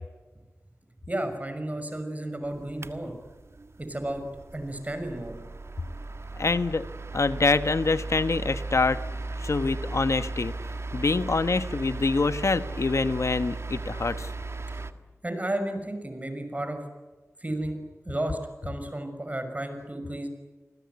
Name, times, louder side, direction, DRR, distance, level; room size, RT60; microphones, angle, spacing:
voice 1, 1.1-3.1 3.8-4.2 4.5-5.4 15.2-16.9 17.4-17.8 18.0-20.3, right 1 dB, 30° right, 7 dB, 6.1 m, -32 dB
sound 1, 2.4-14.9, right 2 dB, 60° right, 1.6 m, -36 dB
voice 2, 6.4-6.8 7.1-9.0 9.4-10.5 10.9-14.3, left 3 dB, 65° left, 12 dB, 1.1 m, -25 dB
28.0 x 21.5 x 9.5 m, 1.3 s
wide cardioid pair, 65°, 5 cm